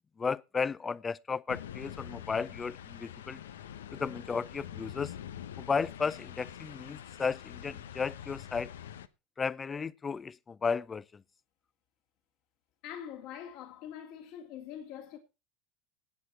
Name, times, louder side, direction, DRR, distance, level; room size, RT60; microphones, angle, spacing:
voice 1, 0.2-3.4 3.9-5.1 5.6-8.7 9.4-11.0, left 5 dB, 25° left, 0.6 m, -34 dB
sound 1, 1.5-9.1, left 10 dB, 85° left, 0.8 m, -45 dB
voice 2, 12.8-15.2, left 9 dB, 60° left, 2.8 m, -44 dB
16.5 x 8.2 x 4.4 m
hypercardioid pair, 85°, 0 cm